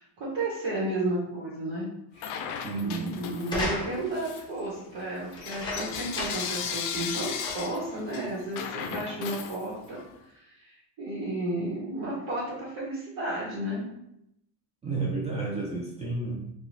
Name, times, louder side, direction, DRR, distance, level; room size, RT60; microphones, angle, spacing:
voice 1, 0.0-1.9 2.1-2.4 2.8-10.0 10.3-13.8, right 1 dB, 55° right, -7 dB, 1.1 m, -33 dB
Bell / Coin (dropping), 2.2-3.7 4.1-10.1, left 7 dB, 60° left, 0.5 m, -36 dB
voice 2, 2.6-3.2 14.8-16.5, right 3 dB, 15° right, -5 dB, 0.4 m, -31 dB
sound 1, 3.4-4.2 5.3-6.6 6.9-7.0 7.4-7.9 8.6-8.7, left 1 dB, 10° left, 0.8 m, -34 dB
2.4 x 2.3 x 3.1 m, 0.81 s
supercardioid pair, 100°, 49 cm